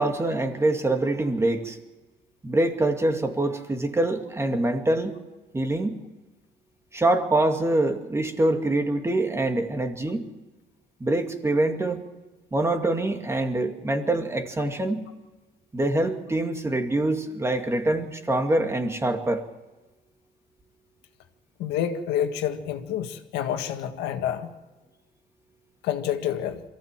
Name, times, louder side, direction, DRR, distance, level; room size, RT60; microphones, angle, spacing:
voice 1, 0.0-1.8 2.4-5.1 5.5-6.0 6.9-10.3 11.0-12.0 12.5-15.1 15.7-19.4, right 2 dB, 15° right, 5 dB, 2.3 m, -25 dB
voice 2, 21.6-24.5 25.8-26.6, left 10 dB, 85° left, 6 dB, 1.8 m, -28 dB
23.5 x 15.0 x 7.7 m, 1.1 s
cardioid pair, 110°, 17 cm